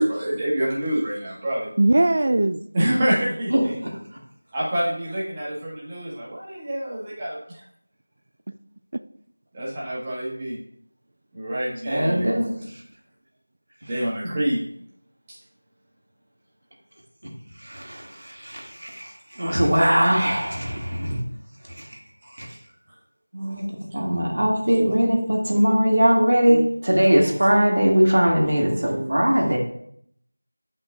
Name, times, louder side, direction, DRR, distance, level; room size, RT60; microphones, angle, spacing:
voice 1, 0.0-1.7 2.7-3.8 4.5-7.6 9.5-10.6 11.3-12.3 13.9-14.6 15.3-15.4, right 1 dB, 15° right, -7 dB, 1.8 m, -27 dB
voice 2, 1.8-2.6 26.5-26.7 28.8-29.1 29.5-29.6, right 2 dB, 45° right, 11 dB, 0.3 m, -20 dB
voice 3, 3.5-3.9 11.9-12.5 17.6-21.2 21.7-21.9 22.4-22.5 23.3-23.6 23.9-29.6, equal, 65° right, -1 dB, 2.3 m, -21 dB
9.4 x 5.5 x 2.7 m, 0.69 s
figure-of-eight pair, 175°, 0 cm